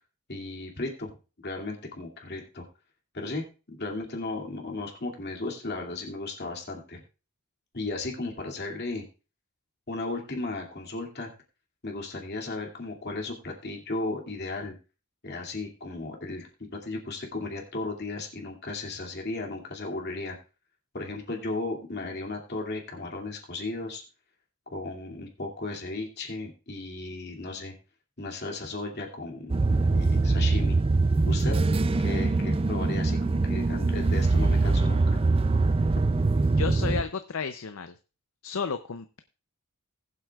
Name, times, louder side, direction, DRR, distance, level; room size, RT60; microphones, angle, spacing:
voice 1, 0.3-1.1 1.4-2.6 3.1-7.0 7.7-9.0 9.9-11.3 11.8-14.7 15.2-16.5 16.8-20.4 20.9-24.0 24.7-27.7 28.2-30.8 31.3-31.6 32.0-35.2, left 2 dB, 50° left, 1 dB, 2.5 m, -35 dB
sound 1, 29.5-37.0, right 3 dB, 25° right, 0.4 m, -23 dB
voice 2, 36.5-37.9 38.4-39.2, left 5 dB, 65° left, 8 dB, 0.6 m, -32 dB
20.0 x 7.7 x 2.4 m, 0.34 s
head